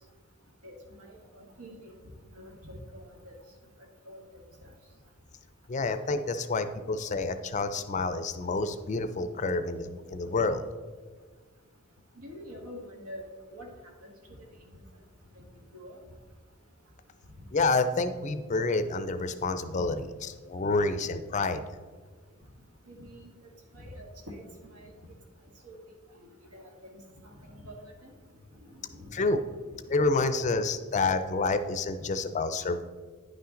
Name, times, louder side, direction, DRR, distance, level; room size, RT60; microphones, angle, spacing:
voice 1, 0.6-1.9 2.3-3.3 4.0-4.2 4.6-4.7 12.2-13.2 13.5-13.7 14.0-14.1 15.3-15.4 15.7-15.9 22.9-23.3 23.7-24.4 24.7-24.9 25.6-25.8 26.5-28.1 28.7-29.1 29.4-29.5, equal, 85° right, 1 dB, 1.7 m, -46 dB
voice 2, 5.7-10.6 17.5-20.0 20.5-21.6 29.1-29.4 29.9-32.8, left 3 dB, 35° left, 10 dB, 0.4 m, -28 dB
10.0 x 5.8 x 3.8 m, 1.5 s
head